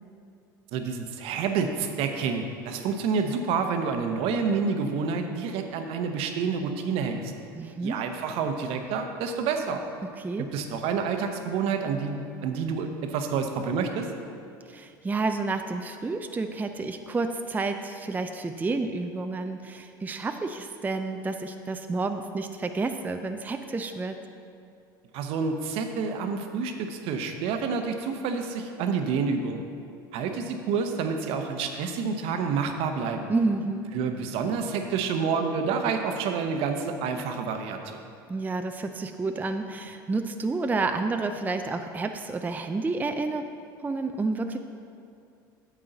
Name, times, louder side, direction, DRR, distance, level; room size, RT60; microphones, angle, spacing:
voice 1, 0.7-7.3 7.8-9.8 10.4-14.1 25.1-29.6 30.1-33.3 33.9-38.0, right 5 dB, 60° right, 5 dB, 0.9 m, -28 dB
voice 2, 7.5-8.0 10.2-10.5 14.7-24.2 33.3-33.9 38.3-43.5 43.8-44.6, right 3 dB, 15° right, 6 dB, 0.4 m, -30 dB
9.1 x 7.5 x 3.9 m, 2.5 s
hypercardioid pair, 75°, 11 cm